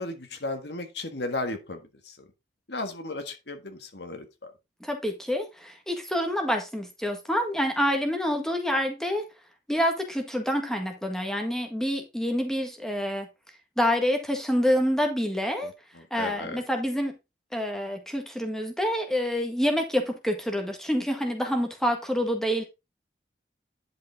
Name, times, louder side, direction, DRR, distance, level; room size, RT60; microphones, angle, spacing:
voice 1, 0.0-2.2 2.7-4.5 15.6-16.6, left 2 dB, 75° left, 1.7 m, -35 dB
voice 2, 4.8-9.2 9.7-13.3 13.8-15.7 16.1-17.2 17.5-22.6, equal, 5° left, 1.6 m, -27 dB
10.5 x 5.2 x 3.7 m
head